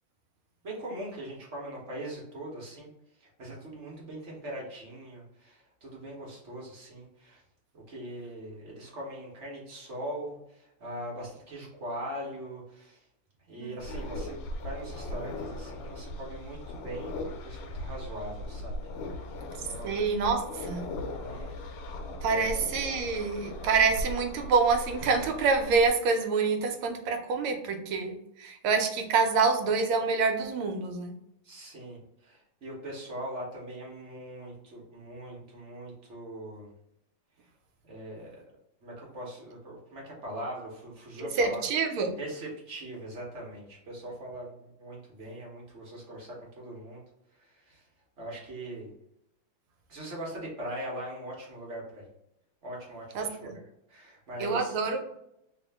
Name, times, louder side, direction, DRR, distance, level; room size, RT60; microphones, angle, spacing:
voice 1, 0.6-2.9 3.2-7.4 7.7-13.0 13.5-18.8 19.3-19.4 19.7-19.9 21.1-21.9 22.3-22.5 31.4-36.7 37.9-38.4 38.8-41.7 42.2-47.0 47.4-47.8 48.2-48.9 49.9-52.1 52.6-53.6 53.9-54.7, right 1 dB, 45° right, -3 dB, 1.0 m, -41 dB
sound 1, 13.8-25.9, left 1 dB, 85° left, 1.5 m, -38 dB
voice 2, 19.8-20.8 22.2-31.1 41.2-42.1 53.1-53.5 54.4-55.2, right 4 dB, 80° right, 5 dB, 1.5 m, -27 dB
3.6 x 2.6 x 3.5 m, 0.80 s
omnidirectional pair, 2.4 m